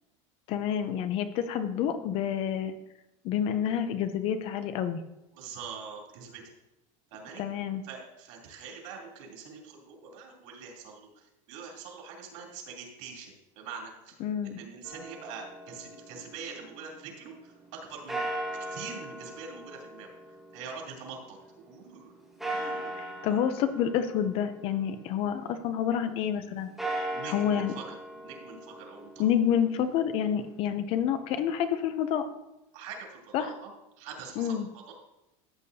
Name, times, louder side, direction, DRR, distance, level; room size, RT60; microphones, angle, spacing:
voice 1, 0.5-2.7 3.2-5.0 7.4-7.8 14.2-14.6 22.9-26.7 27.3-27.7 29.2-32.2 33.3-33.5 34.4-34.7, left 9 dB, 35° left, 10 dB, 0.5 m, -28 dB
voice 2, 5.3-6.4 7.1-7.4 7.8-18.3 18.7-20.1 20.5-23.4 27.1-28.0 28.2-29.2 32.7-33.7 34.0-34.9, right 5 dB, 65° right, 0 dB, 3.2 m, -44 dB
sound 1, 14.8-16.9 18.1-21.5 22.4-25.4 26.6-30.6, right 1 dB, ahead, 1.6 m, -39 dB
13.5 x 8.3 x 2.7 m, 0.93 s
cardioid pair, 180°, 17 cm